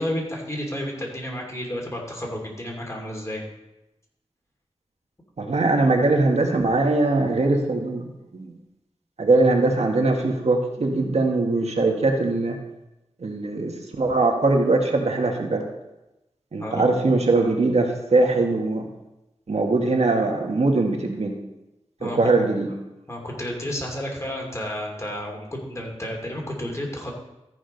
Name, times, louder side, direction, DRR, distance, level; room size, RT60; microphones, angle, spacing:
voice 1, 0.0-3.4 16.6-16.8 22.0-22.2 23.1-27.1, left 1 dB, 25° left, -1 dB, 2.8 m, -31 dB
voice 2, 5.4-8.0 8.3-8.5 9.2-12.6 13.2-15.6 16.5-18.9 19.5-21.3 22.0-22.7, right 2 dB, 70° right, 2 dB, 1.5 m, -21 dB
14.0 x 4.9 x 5.2 m, 0.95 s
wide cardioid pair, 65°, 12 cm